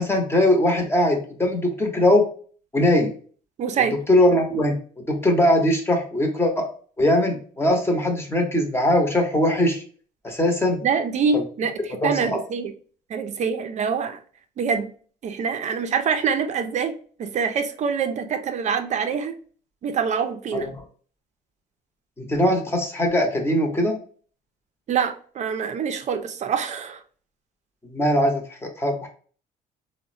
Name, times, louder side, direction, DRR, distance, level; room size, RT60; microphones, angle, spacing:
voice 1, 0.0-2.2 2.7-3.1 4.1-6.7 7.0-9.8 10.2-10.8 12.0-12.4 20.5-20.7 22.2-24.0 27.8-29.1, left 1 dB, 15° left, 2 dB, 0.8 m, -21 dB
voice 2, 3.6-4.0 10.8-12.7 13.1-14.2 14.6-14.9 15.2-16.9 17.2-19.4 19.8-20.7 24.9-27.0, right 6 dB, 45° right, 7 dB, 0.4 m, -25 dB
3.6 x 2.1 x 2.5 m, 0.43 s
cardioid pair, 110°, 17 cm